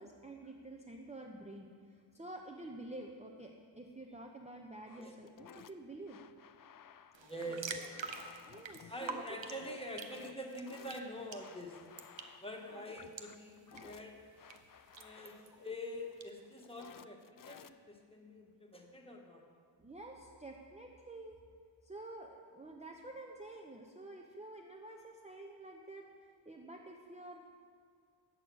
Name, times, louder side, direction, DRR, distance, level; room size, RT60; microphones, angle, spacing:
voice 1, 0.0-6.2 8.5-9.4 13.7-14.1 19.8-21.4 21.8-27.4, right 2 dB, 15° right, 1 dB, 0.8 m, -49 dB
sound 1, 4.9-18.1, left 8 dB, 50° left, 0.4 m, -57 dB
sound 2, 7.1-16.3, right 5 dB, 70° right, 0.9 m, -49 dB
voice 2, 7.2-8.1 8.9-11.8 12.4-14.2 15.0-19.4, equal, 10° left, 0 dB, 1.5 m, -45 dB
9.4 x 7.8 x 6.2 m, 2.1 s
wide cardioid pair, 60°, 46 cm